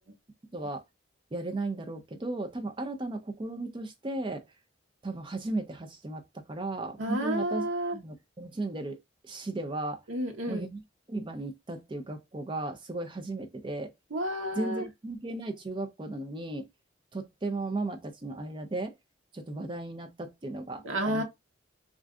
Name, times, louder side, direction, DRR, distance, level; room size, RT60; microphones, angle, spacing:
voice 1, 0.5-0.8 1.3-4.4 5.0-6.2 6.5-7.7 7.9-9.0 9.2-10.0 10.5-10.8 11.1-13.9 14.5-16.6 17.1-18.9 19.3-21.2, right 2 dB, 25° right, 0.4 m, -35 dB
voice 2, 7.0-8.0 10.1-10.7 14.1-14.8 20.8-21.2, right 1 dB, 85° right, 0.9 m, -30 dB
2.5 x 2.3 x 3.5 m
head